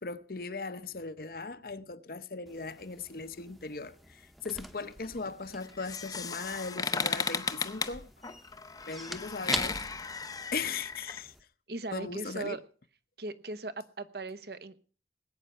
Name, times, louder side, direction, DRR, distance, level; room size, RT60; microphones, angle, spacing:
voice 1, 0.0-8.1 8.9-9.8 10.5-11.3 11.9-12.6, left 4 dB, 55° left, 0.8 m, -38 dB
sound 1, 2.5-11.4, equal, ahead, 0.9 m, -45 dB
sound 2, 5.6-11.2, left 5 dB, 20° left, 0.7 m, -35 dB
voice 2, 11.7-12.6 13.2-14.8, right 2 dB, 60° right, 1.0 m, -38 dB
19.5 x 9.0 x 5.5 m
head